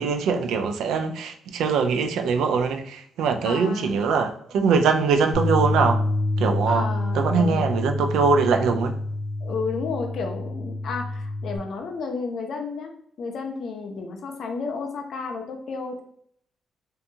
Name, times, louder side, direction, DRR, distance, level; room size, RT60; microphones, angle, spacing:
voice 1, 0.0-6.0 6.4-6.9 7.1-9.0, right 5 dB, 85° right, 6 dB, 0.3 m, -22 dB
voice 2, 3.4-4.0 6.7-7.7 9.4-12.9 13.2-16.0, left 4 dB, 55° left, 3 dB, 0.4 m, -32 dB
Bass guitar, 5.3-11.6, left 2 dB, 90° left, 0.7 m, -27 dB
2.7 x 2.2 x 2.6 m, 0.66 s
cardioid pair, 135°, 0 cm